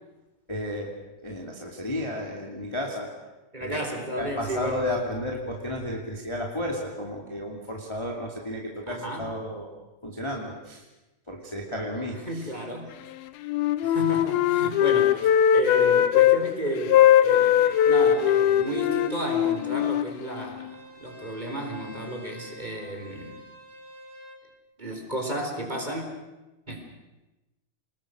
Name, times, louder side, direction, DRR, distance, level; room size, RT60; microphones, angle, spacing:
voice 1, 0.5-0.9 1.2-3.1 3.6-3.8 4.1-9.7 10.0-10.8 11.3-12.5, left 1 dB, 10° left, -1 dB, 1.6 m, -33 dB
voice 2, 3.5-4.8 8.9-9.3 12.3-12.9 13.8-23.4 24.8-26.0 26.7-26.8, right 1 dB, 10° right, 2 dB, 3.7 m, -33 dB
Wind instrument woodwind instrument, 13.4-16.4 16.9-20.7, left 10 dB, 75° left, 2.6 m, -20 dB
Bowed string instrument, 17.5-24.4, equal, 40° right, 6.9 m, -45 dB
28.5 x 20.5 x 6.4 m, 1.1 s
omnidirectional pair, 5.0 m